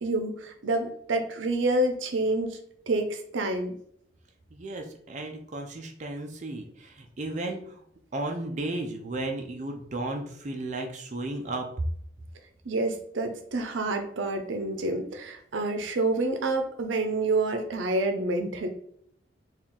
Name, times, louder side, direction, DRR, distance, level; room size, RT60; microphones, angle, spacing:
voice 1, 0.0-2.6 2.9-3.8 12.7-18.7, right 2 dB, 85° right, 5 dB, 0.6 m, -28 dB
voice 2, 4.5-7.8 8.1-11.8, right 2 dB, 40° right, 2 dB, 0.5 m, -34 dB
4.3 x 2.4 x 3.6 m, 0.66 s
head